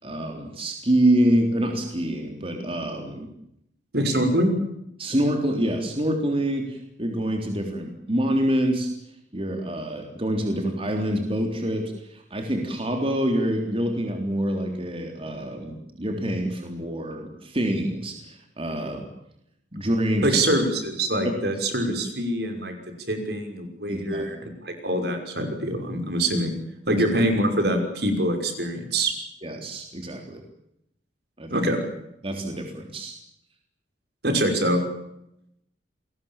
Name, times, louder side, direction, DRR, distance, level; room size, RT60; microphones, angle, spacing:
voice 1, 0.0-3.3 5.0-8.9 9.3-19.0 19.7-20.4 21.9-22.0 23.9-24.3 26.9-27.1 29.4-30.4 31.4-31.7 32.2-33.1, right 1 dB, 30° right, 3 dB, 3.6 m, -26 dB
voice 2, 3.9-4.6 20.2-22.7 23.1-24.4 24.6-26.5 26.9-29.1 31.5-31.8 34.2-34.8, right 1 dB, 65° right, 5 dB, 6.0 m, -24 dB
29.5 x 22.0 x 7.4 m, 0.80 s
head